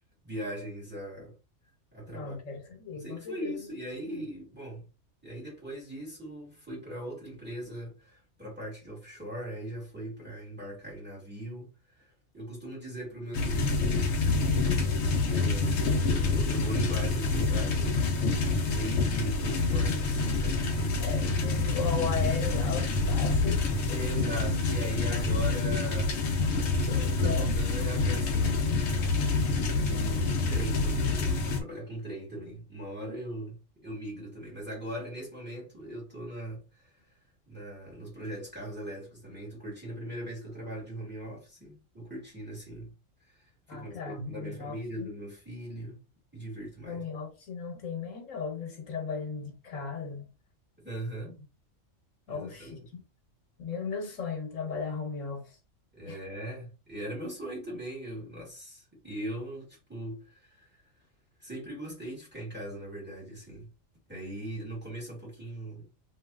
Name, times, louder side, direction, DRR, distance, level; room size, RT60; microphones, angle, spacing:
voice 1, 0.2-1.4 1.9-2.4 2.9-4.9 5.2-11.7 11.9-14.3 15.3-21.1 23.9-26.2 26.7-28.7 29.7-37.1 37.5-42.9 43.3-46.0 46.3-47.0 50.8-51.3 52.3-52.9 55.9-60.7 61.4-63.7 64.1-65.9, right 1 dB, 10° right, 1.6 m, -40 dB
voice 2, 2.1-3.6 4.1-4.2 21.0-23.7 25.1-25.2 27.0-27.5 29.9-30.2 43.7-45.1 46.9-50.3 52.3-53.0 53.6-55.6 56.0-56.2, left 5 dB, 90° left, 1.4 m, -36 dB
sound 1, 13.3-31.6, left 3 dB, 65° left, 0.9 m, -27 dB
3.1 x 2.7 x 2.3 m
omnidirectional pair, 1.3 m